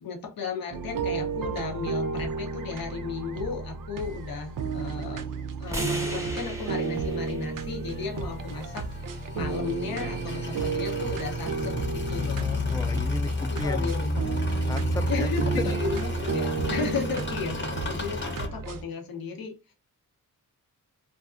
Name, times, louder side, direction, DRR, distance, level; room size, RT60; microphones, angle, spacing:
voice 1, 0.0-5.2 5.6-8.8 9.3-12.6 13.4-14.4 15.1-19.7, left 5 dB, 75° left, 0.8 m, -34 dB
sound 1, 0.7-18.8, right 5 dB, 65° right, 0.5 m, -33 dB
sound 2, 5.7-9.9, equal, 10° right, 0.9 m, -40 dB
sound 3, 7.9-18.5, left 1 dB, 35° left, 0.8 m, -31 dB
voice 2, 12.7-13.9 14.7-15.3 15.6-15.7, left 2 dB, 10° left, 0.3 m, -33 dB
2.6 x 2.2 x 2.4 m
cardioid pair, 50°, 35 cm